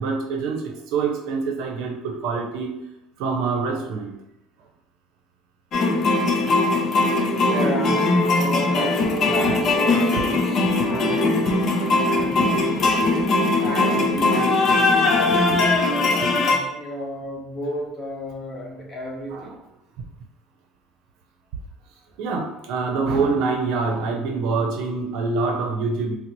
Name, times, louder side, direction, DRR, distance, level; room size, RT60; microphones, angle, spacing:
voice 1, 0.0-2.7 3.2-4.1 19.3-19.5 22.2-26.2, right 4 dB, 75° right, 2 dB, 0.6 m, -25 dB
sound 1, 5.7-16.6, left 2 dB, 45° left, 0.5 m, -20 dB
voice 2, 7.4-11.6 12.1-13.3 13.6-19.5, equal, 25° left, -3 dB, 1.0 m, -33 dB
4.0 x 2.0 x 2.9 m, 0.88 s
cardioid pair, 120°, 0 cm